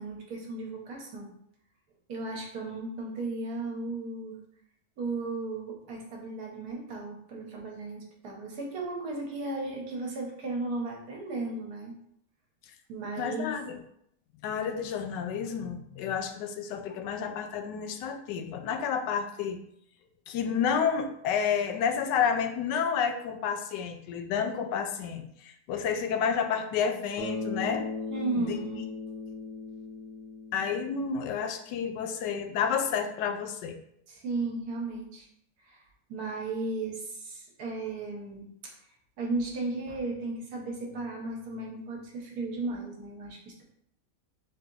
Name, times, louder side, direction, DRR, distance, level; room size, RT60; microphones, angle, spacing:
voice 1, 0.0-1.3 2.1-4.4 5.0-12.0 12.9-13.5 28.1-28.8 34.1-35.3 35.7-35.8 36.1-38.7 39.2-43.6, right 3 dB, 70° right, 0 dB, 1.3 m, -35 dB
voice 2, 13.2-13.8 14.4-19.6 20.3-27.9 28.4-28.6 30.5-33.8, left 7 dB, 85° left, 6 dB, 1.2 m, -30 dB
Bass guitar, 27.2-31.4, left 3 dB, 15° left, 0.8 m, -37 dB
4.1 x 2.8 x 3.8 m, 0.72 s
omnidirectional pair, 1.8 m